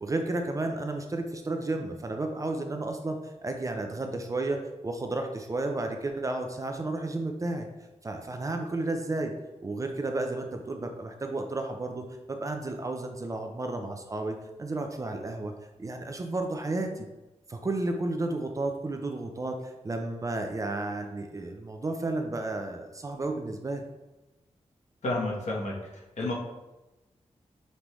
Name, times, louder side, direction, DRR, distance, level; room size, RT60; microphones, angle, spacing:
voice 1, 0.0-4.6 4.8-7.7 8.0-9.3 9.6-15.5 15.8-17.1 17.5-23.8, right 2 dB, 25° right, 4 dB, 0.4 m, -32 dB
voice 2, 25.0-25.7 26.2-26.3, left 2 dB, 75° left, -2 dB, 1.1 m, -29 dB
5.3 x 3.2 x 3.0 m, 1.0 s
wide cardioid pair, 155°, 12 cm